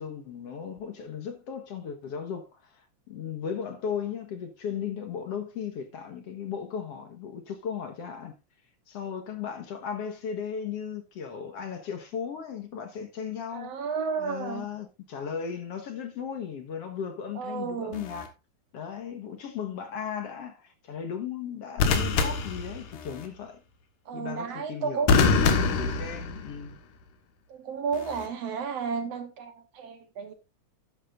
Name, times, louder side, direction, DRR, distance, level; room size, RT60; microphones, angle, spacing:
voice 1, 0.0-8.3 8.9-13.8 14.2-18.3 18.7-23.6 24.1-26.8, left 7 dB, 60° left, 2.1 m, -36 dB
voice 2, 13.5-14.7 17.4-18.0 24.1-25.1 27.5-30.3, right 5 dB, 65° right, 1.9 m, -32 dB
sound 1, 17.9-18.3 21.8-23.3 25.1-26.7 27.9-28.3, left 4 dB, 90° left, 3.0 m, -25 dB
12.0 x 10.5 x 2.5 m
omnidirectional pair, 3.6 m